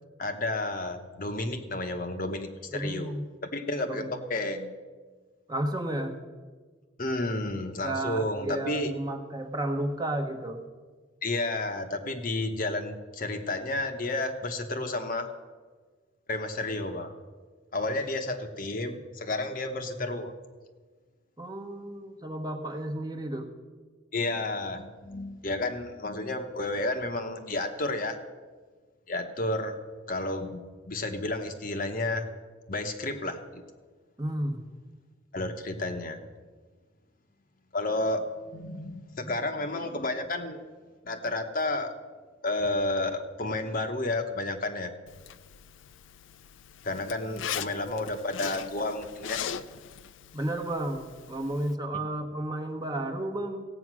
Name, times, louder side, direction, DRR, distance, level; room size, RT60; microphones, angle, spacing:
voice 1, 0.2-3.2 3.5-4.8 7.0-8.9 11.2-15.3 16.3-17.1 17.7-20.3 24.1-28.2 29.1-29.8 30.1-32.2 32.7-33.6 35.3-36.2 37.7-40.6 41.0-41.9 42.4-44.9 46.8-49.4, left 2 dB, 45° left, 5 dB, 1.0 m, -31 dB
voice 2, 2.7-3.3 3.9-4.1 5.5-6.1 7.8-10.6 21.4-23.5 34.2-34.6 50.3-53.6, right 1 dB, 20° right, 3 dB, 1.1 m, -32 dB
Zipper (clothing), 45.1-51.7, left 9 dB, 75° left, 0.5 m, -40 dB
16.0 x 8.5 x 6.1 m, 1.4 s
head